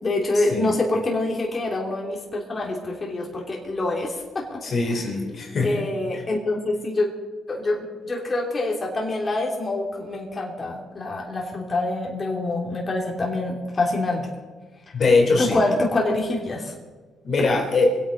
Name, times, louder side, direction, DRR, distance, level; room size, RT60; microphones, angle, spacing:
voice 1, 0.0-4.6 4.9-5.1 5.6-7.1 7.5-14.3 15.4-16.7, left 2 dB, 30° left, -1 dB, 3.0 m, -26 dB
voice 2, 4.6-5.8 14.9-15.6 17.2-17.9, left 3 dB, 50° left, 2 dB, 3.2 m, -21 dB
24.0 x 8.7 x 5.2 m, 1.3 s
cardioid pair, 90°, 0 cm